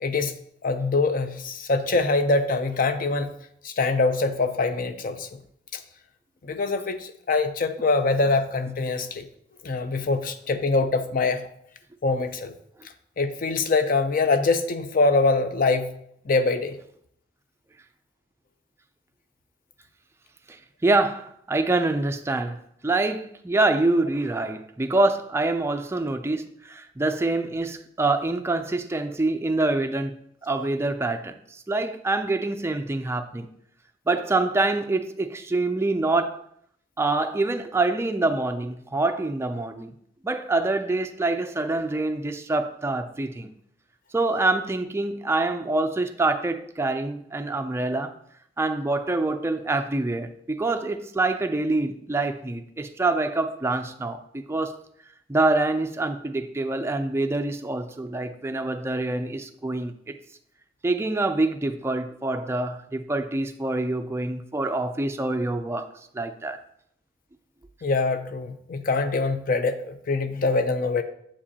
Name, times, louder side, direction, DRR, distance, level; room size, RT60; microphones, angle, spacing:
voice 1, 0.0-0.3 0.6-3.3 3.6-5.3 6.4-9.2 9.6-11.4 12.0-12.5 13.2-15.9 16.3-16.8 67.8-71.0, left 3 dB, 50° left, 0.5 m, -24 dB
voice 2, 20.8-31.3 31.7-33.5 34.1-36.4 37.0-39.9 40.2-43.5 44.1-48.1 48.6-54.8 55.3-60.2 60.8-65.9 66.1-66.6, right 2 dB, 15° right, 0.3 m, -25 dB
7.2 x 5.0 x 2.8 m
head